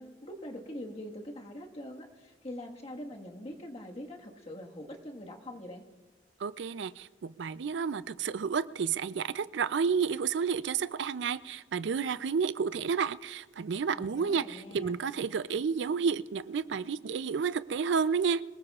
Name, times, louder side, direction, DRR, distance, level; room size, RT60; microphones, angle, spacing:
voice 1, 0.0-5.9 14.0-15.0, left 1 dB, 35° left, 1 dB, 1.6 m, -43 dB
voice 2, 6.4-18.4, right 6 dB, 70° right, 16 dB, 0.4 m, -31 dB
26.0 x 18.5 x 2.4 m, 1.3 s
head